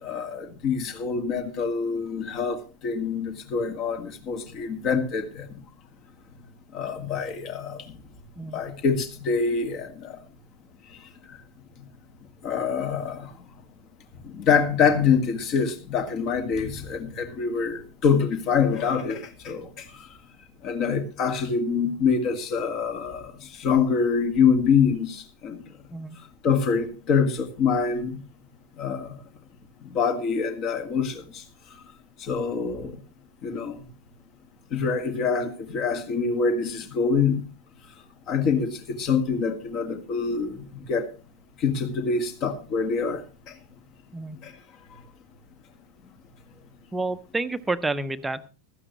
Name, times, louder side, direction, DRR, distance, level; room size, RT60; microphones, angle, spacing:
voice 1, 0.0-5.5 6.7-7.9 8.5-10.2 10.9-11.0 11.3-11.4 12.4-13.3 14.2-20.1 20.6-25.6 26.4-28.2 28.8-29.2 29.8-31.4 32.2-33.0 33.4-33.8 34.7-37.4 38.3-41.1 41.6-43.5 44.4-44.5, left 6 dB, 35° left, 1.8 m, -25 dB
voice 2, 46.9-48.5, right 3 dB, 10° right, 0.8 m, -29 dB
15.5 x 13.0 x 3.1 m
figure-of-eight pair, 90°, 0 cm